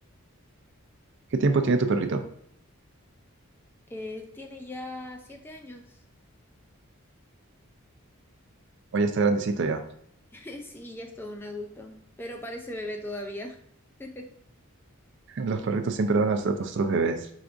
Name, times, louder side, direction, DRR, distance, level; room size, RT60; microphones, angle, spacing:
voice 1, 1.3-2.3 8.9-9.8 15.3-17.2, right 3 dB, 55° right, 7 dB, 0.4 m, -24 dB
voice 2, 3.9-6.0 10.3-13.6 14.0-14.3, left 1 dB, 10° left, 3 dB, 0.4 m, -38 dB
4.9 x 3.4 x 2.5 m, 0.67 s
head